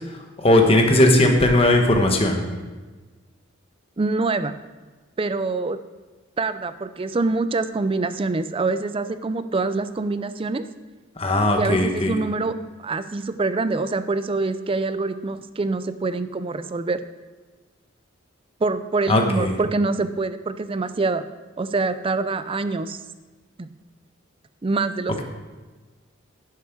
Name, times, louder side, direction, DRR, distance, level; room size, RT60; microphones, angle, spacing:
voice 1, 0.4-2.4 11.2-12.1 19.1-19.5, left 1 dB, 30° left, 3 dB, 1.2 m, -17 dB
voice 2, 4.0-4.6 5.2-5.8 6.4-10.6 11.6-12.6 12.8-17.0 18.6-21.2 21.6-23.0 23.6-23.7 24.6-25.2, right 3 dB, 25° right, 12 dB, 0.4 m, -25 dB
10.5 x 7.4 x 4.6 m, 1.3 s
head